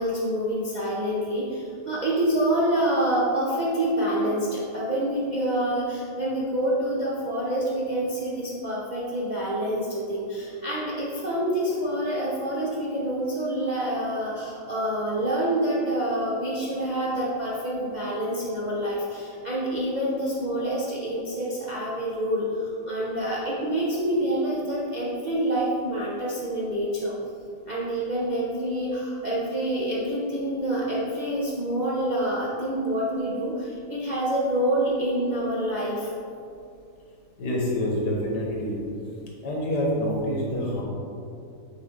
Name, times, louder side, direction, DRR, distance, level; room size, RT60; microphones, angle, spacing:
voice 1, 0.0-27.1 27.7-36.1, right 1 dB, 45° right, -7 dB, 0.6 m, -27 dB
voice 2, 37.4-38.8 39.4-40.8, equal, 80° left, -3 dB, 1.9 m, -26 dB
6.5 x 4.4 x 3.8 m, 2.5 s
omnidirectional pair, 1.8 m